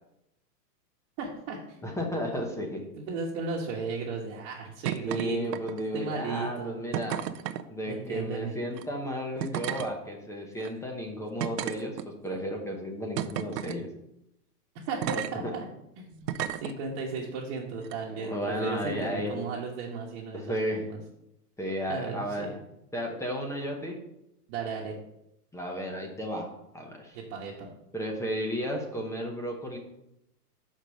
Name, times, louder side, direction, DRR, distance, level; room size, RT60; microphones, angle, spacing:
voice 1, 1.2-2.0 3.0-6.8 7.9-8.6 14.9-15.6 16.0-21.0 21.9-22.5 24.5-25.0 27.1-27.7, right 4 dB, 40° right, -3 dB, 1.3 m, -35 dB
voice 2, 1.8-2.8 5.1-7.2 7.7-13.9 15.4-15.5 18.2-19.4 20.3-20.8 21.6-22.5 22.9-24.0 25.5-27.2 27.9-29.8, equal, 5° left, 2 dB, 0.8 m, -33 dB
sound 1, 4.8-5.2 5.5-6.0 6.9-7.6 8.7-8.8 9.4-9.9 10.6-10.7 11.4-12.3 13.2-13.8 15.0-15.3 16.3-16.7 17.8-17.9, right 11 dB, 85° right, 0.8 m, -32 dB
5.9 x 5.2 x 6.3 m, 0.83 s
hypercardioid pair, 140°, 47 cm